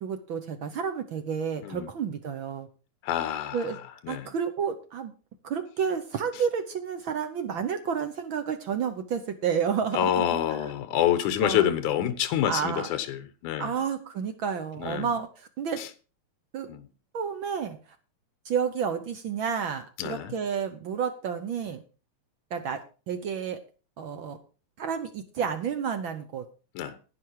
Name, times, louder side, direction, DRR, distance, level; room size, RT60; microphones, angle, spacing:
voice 1, 0.0-2.7 3.5-3.8 4.1-5.1 5.4-10.7 11.4-11.7 12.5-12.9 13.6-15.8 16.5-16.7 17.1-17.8 18.4-21.8 22.5-22.8 23.1-23.6 24.0-24.4 24.8-26.4, right 7 dB, 70° right, 1.1 m, -30 dB
voice 2, 3.0-3.6 4.1-4.3 9.9-13.7 14.8-15.1 16.7-16.8 20.0-20.3 26.8-27.0, left 11 dB, 85° left, 2.5 m, -27 dB
10.5 x 10.0 x 4.7 m
omnidirectional pair, 3.5 m